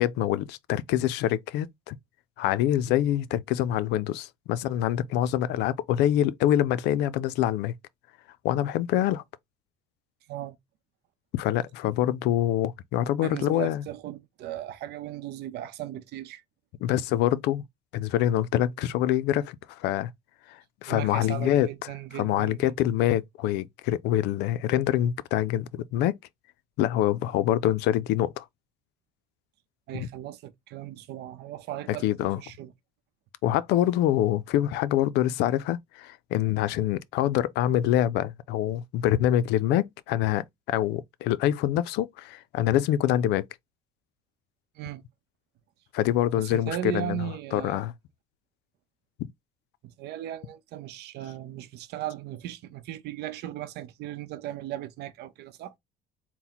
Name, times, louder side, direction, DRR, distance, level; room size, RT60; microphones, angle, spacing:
voice 1, 0.0-2.0 2.4-7.7 8.4-9.2 11.3-13.8 16.8-17.6 17.9-20.1 20.5-21.9 22.1-26.2 26.8-28.4 30.0-30.1 31.9-32.4 33.4-43.5 45.9-47.9, left 12 dB, 90° left, 0.4 m, -25 dB
voice 2, 13.2-16.4 20.9-22.8 29.9-32.7 44.8-45.0 46.4-47.9 49.8-55.7, right 12 dB, 80° right, 0.7 m, -37 dB
4.2 x 2.1 x 3.9 m
cardioid pair, 110°, 17 cm